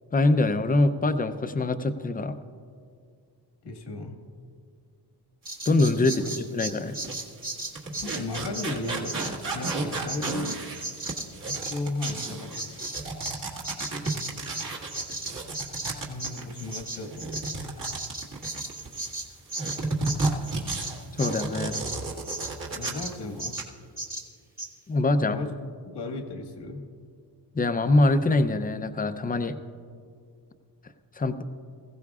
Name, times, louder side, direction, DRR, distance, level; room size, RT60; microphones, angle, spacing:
voice 1, 0.1-2.3 5.7-7.0 21.2-21.7 24.9-25.4 27.5-29.6 31.2-31.4, left 2 dB, 20° left, 10 dB, 0.6 m, -24 dB
voice 2, 3.6-4.2 6.1-6.3 7.9-10.5 11.4-12.9 16.1-17.3 22.7-23.6 25.2-25.5 25.9-26.8, left 2 dB, 80° left, 3 dB, 1.7 m, -35 dB
Bird vocalization bird call bird song, 5.5-13.4 13.6-22.5 22.8-23.1 23.4-23.7 24.0-24.3 24.6-24.7, right 2 dB, 20° right, 1.5 m, -36 dB
sound 1, 6.2-6.3 6.9-19.1 19.6-23.1 23.4-23.6, right 3 dB, 50° right, 1.9 m, -33 dB
20.0 x 15.5 x 2.4 m, 2.2 s
cardioid pair, 115°, 41 cm